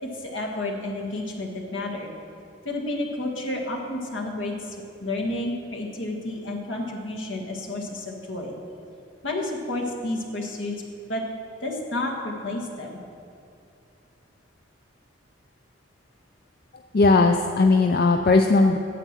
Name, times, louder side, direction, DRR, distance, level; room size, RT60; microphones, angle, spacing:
voice 1, 0.0-2.1 2.6-8.5 9.2-10.7 11.1-11.2 11.6-13.0, left 2 dB, 70° left, 0 dB, 1.7 m, -31 dB
voice 2, 16.9-18.8, left 3 dB, 50° left, 5 dB, 0.4 m, -18 dB
9.2 x 8.1 x 7.5 m, 2.5 s
head